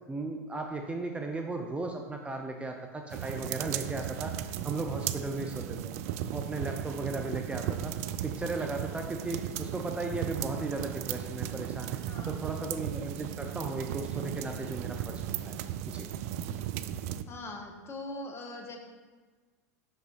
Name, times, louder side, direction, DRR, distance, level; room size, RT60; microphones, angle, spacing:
voice 1, 0.1-5.9 6.3-12.0 12.3-15.6 15.9-16.1, right 2 dB, 15° right, 3 dB, 0.6 m, -36 dB
sound 1, 3.1-17.2, right 11 dB, 60° right, 0.4 m, -36 dB
voice 2, 5.4-5.7 12.1-12.7 16.4-16.7 17.3-18.8, left 2 dB, 30° left, 3 dB, 1.2 m, -43 dB
6.1 x 5.5 x 4.2 m, 1.4 s
hypercardioid pair, 90°, 9 cm